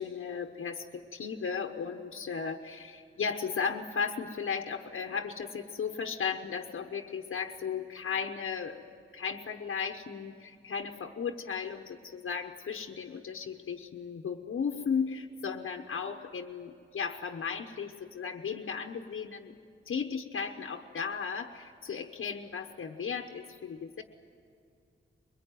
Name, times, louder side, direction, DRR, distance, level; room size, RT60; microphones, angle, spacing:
voice 1, 0.0-8.8 9.1-19.5 19.9-24.0, left 6 dB, 85° left, 3 dB, 1.1 m, -35 dB
23.0 x 22.5 x 9.3 m, 2.4 s
wide cardioid pair, 175°, 21 cm